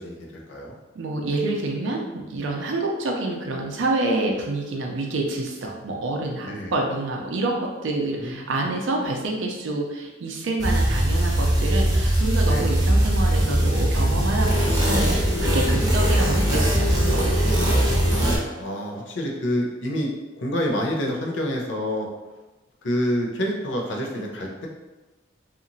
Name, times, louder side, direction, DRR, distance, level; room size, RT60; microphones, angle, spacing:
voice 1, 0.0-0.8 6.4-6.7 8.2-8.7 12.5-12.7 15.6-16.2 18.6-20.1 20.4-22.1 22.8-24.7, equal, 75° left, 0 dB, 0.6 m, -28 dB
voice 2, 1.0-17.9, right 2 dB, 90° right, 0 dB, 0.4 m, -28 dB
sound 1, 10.6-18.4, right 1 dB, 20° right, 0.7 m, -20 dB
2.8 x 2.4 x 2.6 m, 1.2 s
head